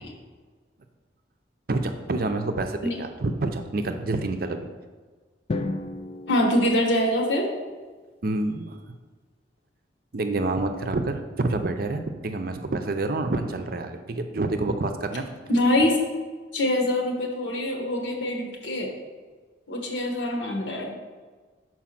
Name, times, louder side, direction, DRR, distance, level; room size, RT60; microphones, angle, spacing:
voice 1, 1.7-4.7 8.2-8.8 10.1-15.3, right 2 dB, 50° right, 6 dB, 0.5 m, -28 dB
Drum, 5.5-7.6, left 2 dB, 30° left, 0.3 m, -34 dB
voice 2, 6.3-7.5 15.5-16.0 16.5-18.9 19.7-20.9, left 1 dB, 80° left, 1 dB, 1.3 m, -24 dB
6.1 x 4.6 x 5.8 m, 1.4 s
head